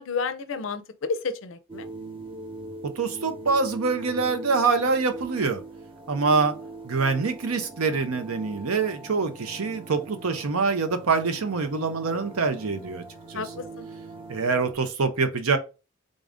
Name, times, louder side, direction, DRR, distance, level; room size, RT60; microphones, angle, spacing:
voice 1, 0.0-1.9 13.3-13.9, left 4 dB, 65° left, 0.4 m, -31 dB
sound 1, 1.7-14.7, right 3 dB, 25° right, 0.6 m, -42 dB
voice 2, 2.8-5.6 6.1-6.6 6.8-13.0 13.3-13.4 14.3-15.6, right 4 dB, 85° right, 0.7 m, -25 dB
3.7 x 2.5 x 3.5 m
head